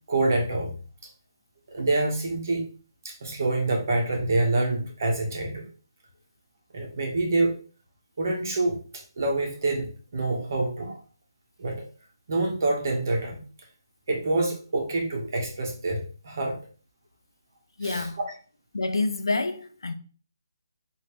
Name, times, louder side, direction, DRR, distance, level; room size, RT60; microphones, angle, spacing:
voice 1, 0.1-0.7 1.7-2.6 3.0-5.6 6.7-7.5 8.2-11.0 11.6-11.8 12.3-13.4 14.1-16.6 17.8-18.3, right 2 dB, 45° right, 1.4 m, -26 dB
voice 2, 17.8-18.2 18.7-19.9, left 3 dB, 85° left, 0.6 m, -27 dB
4.6 x 3.1 x 3.2 m
hypercardioid pair, 170°, 2 cm